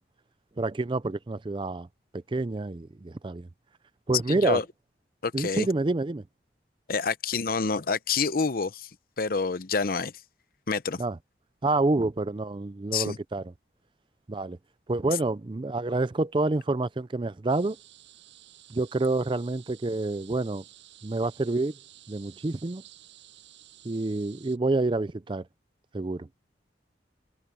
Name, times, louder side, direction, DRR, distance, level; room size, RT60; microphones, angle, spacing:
voice 1, 0.6-1.9 2.1-3.5 4.1-4.6 5.3-6.2 11.0-11.2 11.6-13.5 14.3-14.6 14.9-17.8 18.7-20.6 21.0-21.7 22.1-22.8 23.8-25.4 25.9-26.3, right 2 dB, 25° right, 0.4 m, -28 dB
voice 2, 4.3-4.6 5.2-5.7 6.9-8.9 9.2-10.1 10.7-11.0 12.9-13.2, left 4 dB, 50° left, 0.7 m, -27 dB
sound 1, 17.5-24.6, right 13 dB, 80° right, 7.9 m, -53 dB
head